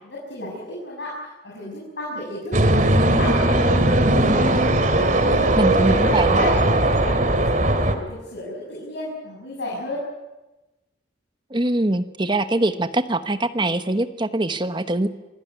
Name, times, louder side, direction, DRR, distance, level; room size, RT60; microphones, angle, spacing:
voice 1, 0.0-4.3 4.9-10.0, left 1 dB, 80° left, -5 dB, 6.7 m, -33 dB
sound 1, 2.5-7.9, right 1 dB, 45° right, 2.4 m, -18 dB
voice 2, 5.6-6.4 11.5-15.1, right 1 dB, 25° right, 10 dB, 1.1 m, -23 dB
26.0 x 17.0 x 9.5 m, 1.1 s
head